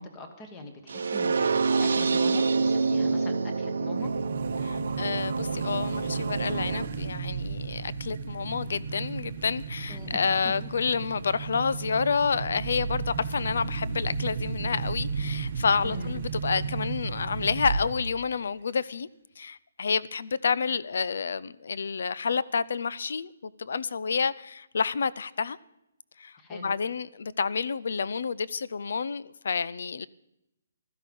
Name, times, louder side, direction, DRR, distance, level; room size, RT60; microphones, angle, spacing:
voice 1, 0.0-4.1 9.9-10.7 15.8-16.1 26.4-26.8, left 1 dB, 10° left, 1.3 m, -42 dB
sound 1, 0.9-6.9, right 4 dB, 65° right, 0.9 m, -27 dB
sound 2, 4.0-18.2, right 5 dB, 35° right, 1.0 m, -34 dB
voice 2, 4.6-19.1 19.4-25.6 26.2-30.1, left 5 dB, 55° left, 0.5 m, -29 dB
15.5 x 13.0 x 5.4 m
hypercardioid pair, 175°, 0 cm